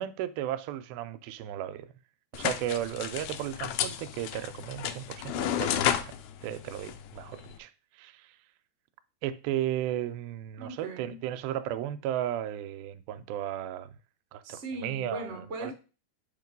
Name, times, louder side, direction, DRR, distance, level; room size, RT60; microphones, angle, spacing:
voice 1, 0.0-1.9 2.3-6.2 6.4-7.7 8.0-8.3 9.2-13.9 14.3-15.3 15.6-15.7, right 12 dB, 85° right, 2.4 m, -34 dB
sound 1, 2.3-7.6, left 10 dB, 80° left, 1.8 m, -32 dB
voice 2, 10.6-11.3 14.4-15.7, right 2 dB, 50° right, 0.7 m, -39 dB
8.7 x 3.0 x 5.2 m
omnidirectional pair, 4.2 m